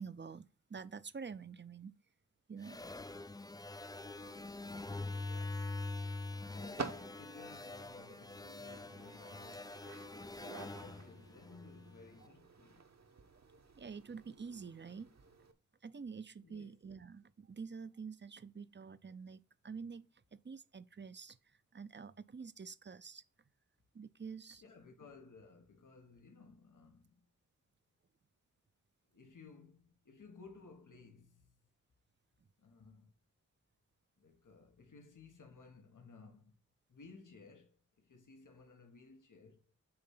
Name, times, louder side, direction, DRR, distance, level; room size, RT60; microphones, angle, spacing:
voice 1, 0.0-1.9 2.5-2.8 12.2-12.3 13.4-15.1 15.8-23.2 23.9-24.6, right 5 dB, 35° right, 0.6 m, -48 dB
sound 1, 2.6-12.1, left 2 dB, 15° left, 0.4 m, -44 dB
sound 2, 4.0-15.5, right 4 dB, 60° right, 1.2 m, -52 dB
voice 2, 4.8-5.9 6.5-9.9 10.6-12.8 16.4-16.7 24.6-27.2 29.1-31.6 32.6-33.1 34.2-36.6 36.9-39.6, left 4 dB, 85° left, 1.4 m, -58 dB
8.8 x 3.2 x 5.5 m
wide cardioid pair, 65°, 30 cm